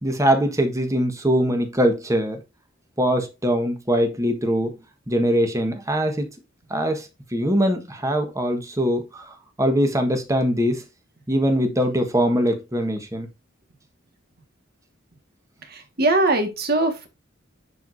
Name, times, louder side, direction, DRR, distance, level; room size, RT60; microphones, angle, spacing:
voice 1, 0.0-2.4 3.0-4.8 5.1-6.3 6.7-10.8 11.3-13.3, equal, 15° right, 1.4 m, -22 dB
voice 2, 15.7-17.1, right 2 dB, 50° right, 1.7 m, -21 dB
10.0 x 4.6 x 2.6 m
head